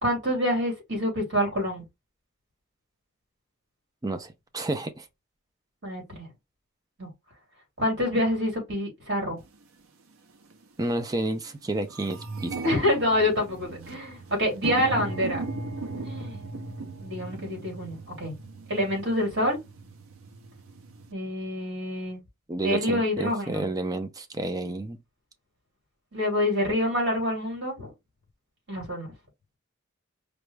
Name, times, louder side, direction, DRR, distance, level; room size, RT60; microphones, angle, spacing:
voice 1, 0.0-1.8 5.8-6.3 7.0-7.1 7.8-9.4 12.6-15.4 16.0-16.4 17.0-18.3 18.7-19.6 21.1-22.2 22.6-23.7 26.1-27.9 28.7-29.1, left 1 dB, 55° right, 2.7 m, -27 dB
voice 2, 4.0-5.1 10.8-12.6 22.5-25.0, right 2 dB, 15° right, 0.4 m, -30 dB
sound 1, 9.5-9.6 10.4-10.6 11.0-11.1 11.4-21.1, right 3 dB, 80° right, 0.7 m, -37 dB
5.1 x 2.3 x 3.2 m
head